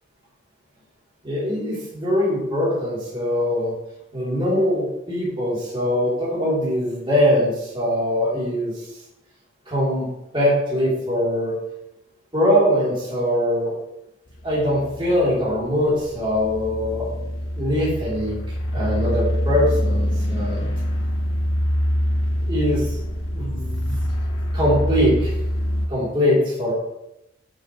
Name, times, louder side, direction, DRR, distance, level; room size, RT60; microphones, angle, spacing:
voice 1, 1.2-3.7 4.1-8.9 9.7-11.5 12.3-13.8 14.4-17.1 17.6-18.4 18.7-20.7 22.5-23.0 23.3-24.0 24.5-25.3 25.9-26.7, equal, 25° right, -8 dB, 3.1 m, -22 dB
sound 1, 14.3-25.9, equal, 85° left, 1.2 m, -25 dB
11.5 x 6.5 x 3.1 m, 0.88 s
head